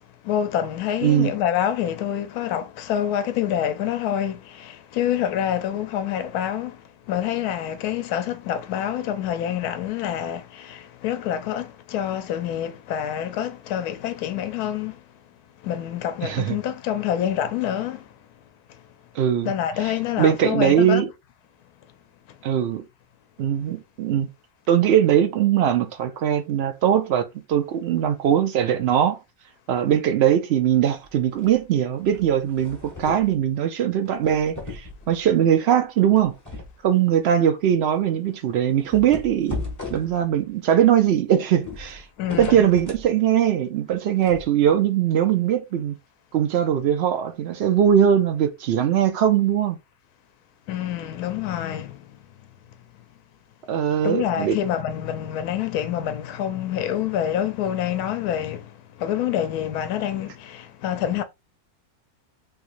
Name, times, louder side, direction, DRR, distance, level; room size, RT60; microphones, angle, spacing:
voice 1, 0.2-15.0 15.6-18.1 18.7-18.8 19.4-21.0 42.2-42.7 50.7-52.2 54.0-61.2, left 10 dB, 75° left, 1.1 m, -27 dB
voice 2, 1.0-1.3 16.2-16.6 19.2-19.5 20.2-21.1 22.4-22.8 23.4-24.3 24.7-29.2 29.7-36.3 36.8-39.6 39.9-42.0 42.4-46.0 46.3-49.8 53.7-54.6, right 9 dB, 80° right, 0.5 m, -21 dB
sound 1, 31.0-31.6 32.0-33.4 34.1-35.3 36.1-36.8 37.1-37.2 37.7-37.8 38.7-40.5 41.5-43.1 44.2-44.4, left 3 dB, 15° left, 1.0 m, -36 dB
3.5 x 3.0 x 2.5 m
omnidirectional pair, 1.6 m